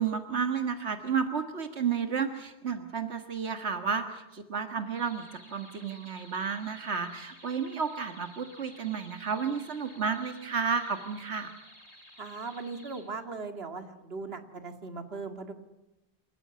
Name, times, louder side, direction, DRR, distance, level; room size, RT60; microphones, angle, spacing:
voice 1, 0.0-11.5, right 6 dB, 90° right, 8 dB, 1.9 m, -32 dB
sound 1, 4.9-13.0, equal, 35° left, 7.6 m, -54 dB
voice 2, 12.2-15.5, right 4 dB, 65° right, 7 dB, 2.4 m, -39 dB
28.0 x 15.0 x 9.6 m, 0.96 s
omnidirectional pair, 1.1 m